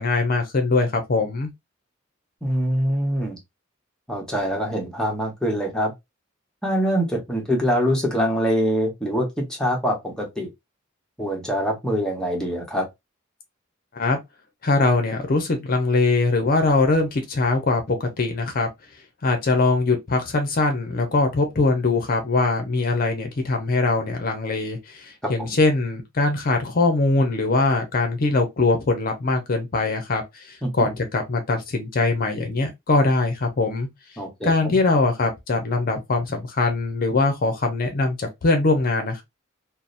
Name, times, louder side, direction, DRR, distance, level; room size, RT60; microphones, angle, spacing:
voice 1, 0.0-1.5 13.9-14.2 14.6-18.7 19.2-33.9 34.4-39.2, left 3 dB, 45° left, 0.5 m, -22 dB
voice 2, 2.4-3.4 4.1-5.9 6.6-10.5 11.2-12.9 25.2-25.6 30.6-30.7 34.2-34.8, equal, 5° left, 0.8 m, -24 dB
2.7 x 2.0 x 2.4 m
head